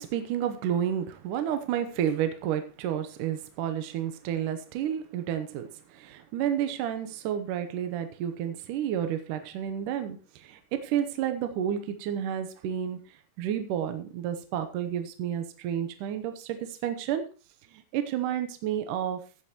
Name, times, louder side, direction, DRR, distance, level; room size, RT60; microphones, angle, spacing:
voice 1, 0.0-17.2 17.7-19.2, right 10 dB, 75° right, 8 dB, 2.2 m, -31 dB
15.5 x 8.8 x 3.0 m, 0.35 s
omnidirectional pair, 4.3 m